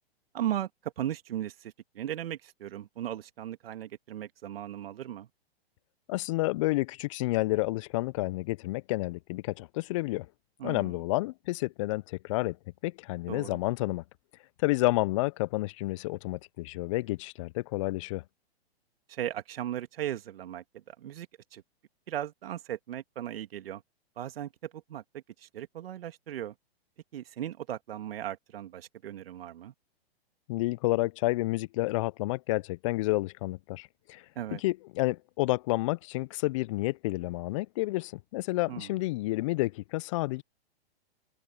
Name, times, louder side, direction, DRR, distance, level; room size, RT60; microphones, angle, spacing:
voice 1, 0.3-5.3 10.6-10.9 13.3-13.6 19.1-21.3 21.5-21.6 22.1-23.8 24.2-26.5 27.1-29.7 34.4-34.6 38.7-38.9, right 11 dB, 65° right, 2.3 m, -37 dB
voice 2, 6.1-10.3 10.6-12.6 12.8-14.0 14.6-18.2 30.5-34.2 34.5-40.4, left 20 dB, 30° left, 0.4 m, -30 dB
hypercardioid pair, 120°, 32 cm